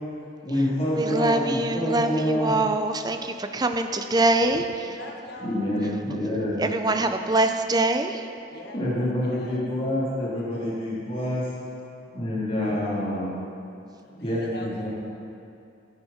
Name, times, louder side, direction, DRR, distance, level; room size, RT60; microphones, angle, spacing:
voice 1, 0.4-2.5 5.4-6.6 8.7-11.4 12.1-13.3 14.2-14.9, left 1 dB, 30° left, -8 dB, 3.3 m, -27 dB
voice 2, 0.9-5.0 6.6-8.2, right 2 dB, 20° right, 7 dB, 0.5 m, -24 dB
voice 3, 4.8-6.1 8.4-9.6 14.0-14.9, equal, 55° left, 1 dB, 1.4 m, -42 dB
15.5 x 10.0 x 4.3 m, 2.5 s
head